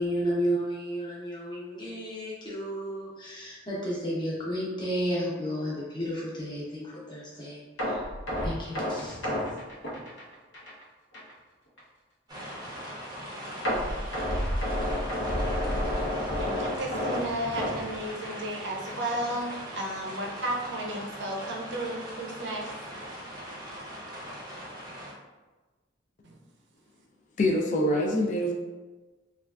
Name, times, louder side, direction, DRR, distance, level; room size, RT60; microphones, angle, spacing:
voice 1, 0.0-8.0 8.4-9.2, equal, 25° left, -6 dB, 0.7 m, -32 dB
sound 1, 7.8-10.8 11.1-11.3 11.8-11.9 13.6-18.6 18.8-19.1 19.5-19.6, equal, 75° left, 0.8 m, -30 dB
sound 2, 12.3-25.1, equal, 20° right, 0.6 m, -41 dB
voice 2, 15.7-22.7 26.2-26.4, right 1 dB, 65° right, 0 dB, 0.5 m, -34 dB
voice 3, 27.4-28.5, left 1 dB, 40° left, 0 dB, 0.3 m, -25 dB
3.3 x 2.3 x 2.3 m, 1.2 s
head